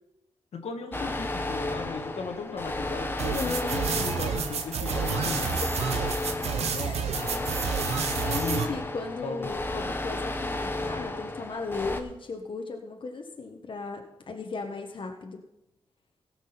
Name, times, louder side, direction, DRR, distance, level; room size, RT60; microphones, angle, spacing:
voice 1, 0.5-5.5 6.4-7.5 7.9-8.0 8.3-8.6 9.2-9.5, left 4 dB, 75° left, 4 dB, 1.5 m, -37 dB
sound 1, 0.9-12.0, left 2 dB, 20° left, 1.0 m, -33 dB
sound 2, 3.2-8.7, right 6 dB, 85° right, 1.0 m, -30 dB
voice 2, 3.3-3.9 5.3-6.1 6.8-7.0 8.2-15.4, left 4 dB, 50° left, 3 dB, 1.3 m, -36 dB
17.0 x 6.0 x 5.9 m, 0.91 s
cardioid pair, 75°, 11 cm